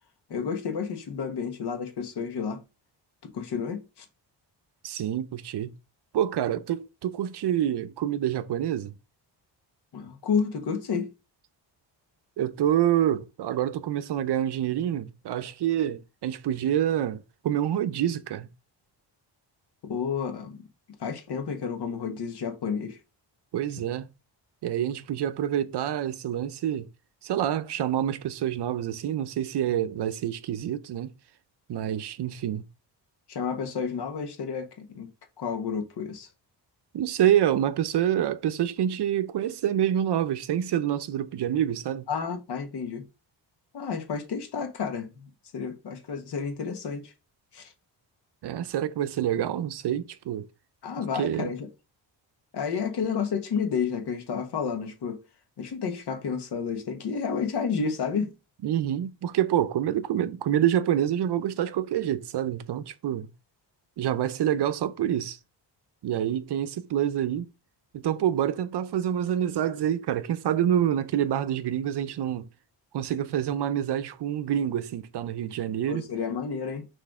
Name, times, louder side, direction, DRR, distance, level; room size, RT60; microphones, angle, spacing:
voice 1, 0.3-2.6 3.2-4.0 9.9-11.1 19.8-20.6 21.0-23.0 33.3-35.1 35.4-36.3 42.1-43.0 43.7-47.1 47.5-47.7 50.8-51.7 52.5-55.2 55.6-58.3 75.8-76.9, left 6 dB, 65° left, 1.4 m, -31 dB
voice 2, 4.8-5.7 6.1-8.9 12.4-18.5 23.5-24.1 24.6-26.9 27.2-31.1 31.7-32.6 36.9-42.1 48.4-50.5 51.1-51.5 58.6-63.3 64.0-65.4 66.0-67.5 67.9-72.5 72.9-76.1, right 10 dB, 65° right, 0.7 m, -27 dB
6.4 x 3.3 x 4.8 m
wide cardioid pair, 145°, 44 cm